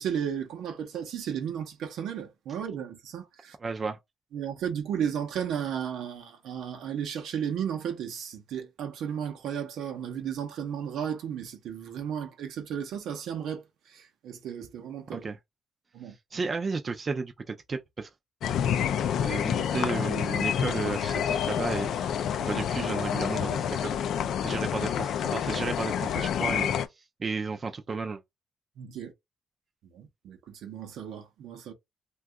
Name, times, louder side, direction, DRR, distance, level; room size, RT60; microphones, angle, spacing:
voice 1, 0.0-3.6 4.3-13.6 13.9-15.3 15.9-16.1 28.8-29.1 29.9-31.7, right 8 dB, 80° right, 0.7 m, -34 dB
voice 2, 3.6-4.0 15.1-15.4 16.3-18.1 19.2-21.9 22.4-24.0 24.4-26.7 27.2-28.2, right 4 dB, 35° right, 0.4 m, -33 dB
sound 1, 18.4-26.9, left 8 dB, 75° left, 0.3 m, -28 dB
2.6 x 2.3 x 3.5 m
cardioid pair, 90°, 0 cm